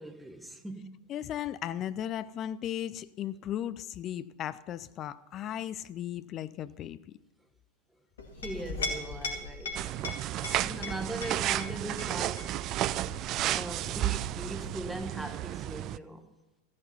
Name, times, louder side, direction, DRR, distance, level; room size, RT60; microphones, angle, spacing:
voice 1, 0.0-1.0 8.4-9.8 10.6-12.5 13.5-16.3, right 2 dB, 5° right, 1.3 m, -40 dB
voice 2, 1.1-7.0 10.5-10.6, left 11 dB, 30° left, 0.5 m, -36 dB
Chink clink, 8.2-15.3, left 3 dB, 65° left, 2.2 m, -40 dB
sound 1, 9.8-16.0, right 14 dB, 35° right, 0.3 m, -32 dB
14.5 x 9.7 x 5.6 m
figure-of-eight pair, 90°, 0 cm